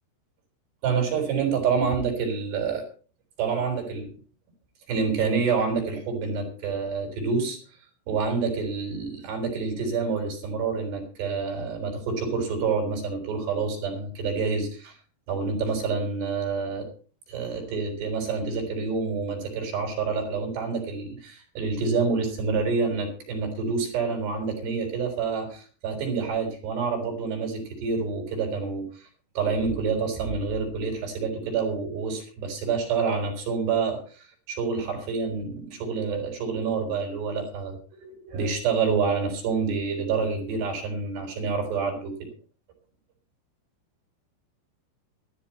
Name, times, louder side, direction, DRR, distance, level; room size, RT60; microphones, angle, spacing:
voice 1, 0.8-2.8 3.4-4.1 4.9-7.6 8.1-15.0 15.3-16.9 17.3-29.0 29.4-42.1, right 5 dB, 55° right, 3 dB, 5.7 m, -27 dB
13.5 x 13.0 x 4.4 m, 0.41 s
omnidirectional pair, 5.9 m